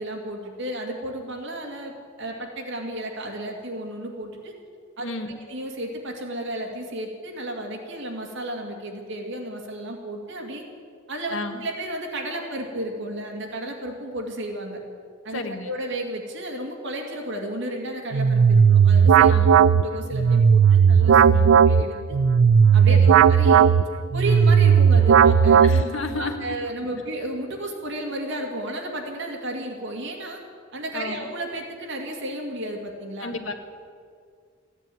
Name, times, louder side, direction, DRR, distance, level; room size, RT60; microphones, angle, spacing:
voice 1, 0.0-4.5 5.0-10.6 11.1-14.8 15.2-19.3 19.7-21.4 21.7-22.2 22.7-23.7 24.1-25.6 26.2-30.4 30.7-33.3, right 1 dB, 65° right, 2 dB, 2.3 m, -33 dB
voice 2, 5.0-5.4 11.3-11.7 15.3-15.7 19.3-19.7 21.3-21.6 22.9-23.2 25.6-26.6 30.9-31.3 33.2-33.5, left 2 dB, 70° left, 5 dB, 1.5 m, -32 dB
sound 1, 18.1-26.2, right 7 dB, 90° right, 0.4 m, -15 dB
15.0 x 9.9 x 9.2 m, 2.2 s
head